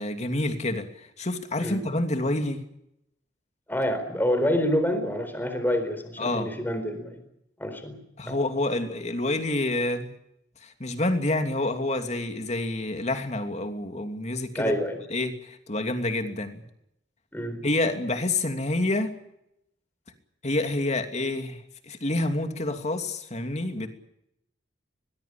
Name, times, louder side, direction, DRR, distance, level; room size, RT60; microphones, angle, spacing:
voice 1, 0.0-2.6 6.2-6.5 8.2-10.1 10.6-14.7 15.1-16.6 17.6-19.1 20.4-23.9, left 2 dB, 40° left, 6 dB, 2.9 m, -28 dB
voice 2, 3.7-7.2 7.6-8.4 14.5-15.0 17.3-17.7, equal, 10° left, 7 dB, 4.3 m, -27 dB
22.5 x 21.0 x 8.6 m, 0.79 s
head